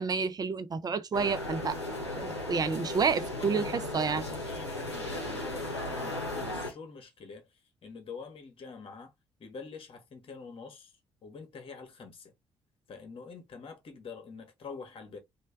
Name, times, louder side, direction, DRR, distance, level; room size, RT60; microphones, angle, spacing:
voice 1, 0.0-1.8 2.1-4.3, right 5 dB, 30° right, 0.5 m, -30 dB
sound 1, 1.1-6.7, left 1 dB, 90° left, 0.7 m, -36 dB
voice 2, 3.4-3.7 4.3-9.1 9.4-12.3 12.9-15.2, left 5 dB, 40° left, 1.0 m, -46 dB
3.2 x 2.2 x 3.3 m
figure-of-eight pair, 45°, 14 cm